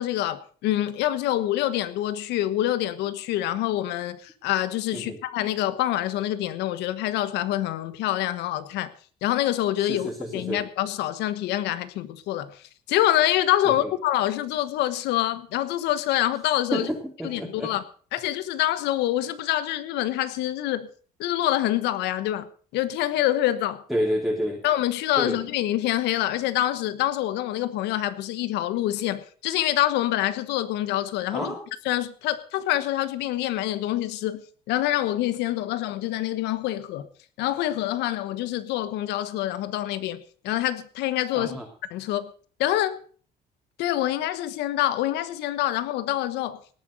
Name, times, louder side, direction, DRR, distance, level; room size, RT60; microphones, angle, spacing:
voice 1, 0.0-8.9 9.2-16.9 17.2-17.8 18.1-20.9 21.2-22.5 22.7-23.8 24.6-31.5 31.8-34.4 34.7-37.1 37.4-41.6 41.9-42.3 42.6-43.0 43.8-46.6, left 13 dB, 85° left, 1.3 m, -26 dB
voice 2, 9.9-10.6 13.6-13.9 16.7-17.7 23.9-24.6 25.2-25.4 31.3-31.6 41.3-41.7, equal, ahead, 2.9 m, -29 dB
18.5 x 9.0 x 6.4 m
cardioid pair, 110°, 17 cm